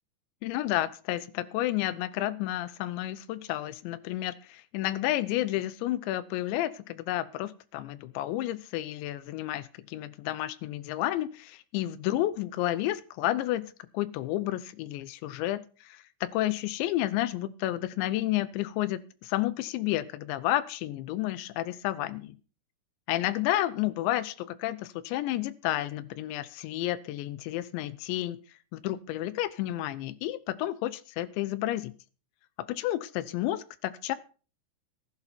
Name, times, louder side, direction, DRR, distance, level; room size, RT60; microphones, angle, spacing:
voice 1, 0.4-16.0 16.3-22.4 23.1-28.4 28.7-31.9 32.7-34.2, left 15 dB, 90° left, 16 dB, 3.2 m, -31 dB
15.0 x 11.0 x 4.5 m, 0.37 s
omnidirectional pair, 5.1 m